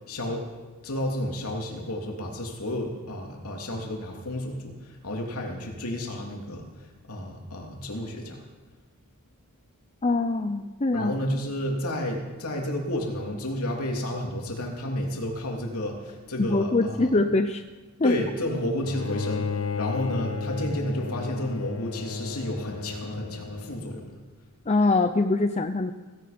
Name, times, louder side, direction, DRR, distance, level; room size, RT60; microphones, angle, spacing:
voice 1, 0.1-0.4 0.8-4.8 5.0-8.4 10.9-17.2 18.0-24.1, left 1 dB, 80° left, 0 dB, 3.1 m, -31 dB
voice 2, 10.0-11.1 16.4-17.6 18.0-18.1 24.7-25.9, left 2 dB, 30° left, 8 dB, 0.6 m, -23 dB
Bowed string instrument, 18.8-24.1, left 5 dB, 65° left, 0.8 m, -33 dB
17.0 x 16.0 x 5.2 m, 1.3 s
head